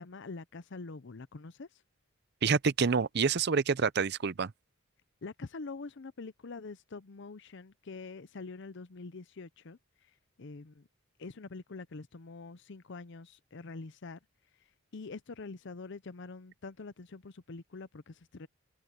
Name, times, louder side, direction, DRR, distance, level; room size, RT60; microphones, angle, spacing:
voice 1, 0.0-1.7 5.2-9.8 10.4-10.9 11.2-14.2 14.9-18.5, left 3 dB, 55° left, 0.6 m, -45 dB
voice 2, 2.4-4.5, right 5 dB, 50° right, 0.6 m, -27 dB
head